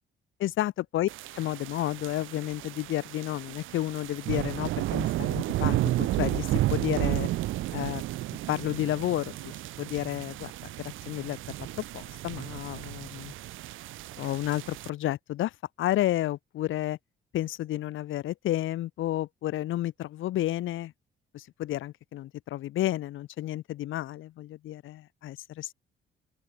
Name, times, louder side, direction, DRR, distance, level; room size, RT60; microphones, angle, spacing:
voice 1, 0.4-7.3 7.7-8.0 8.5-13.3 14.2-15.5 15.8-17.0 17.3-20.9 21.3-25.7, left 14 dB, 80° left, 1.9 m, -31 dB
sound 1, 1.1-14.9, right 15 dB, 80° right, 0.8 m, -32 dB
open air
cardioid pair, 90°, 20 cm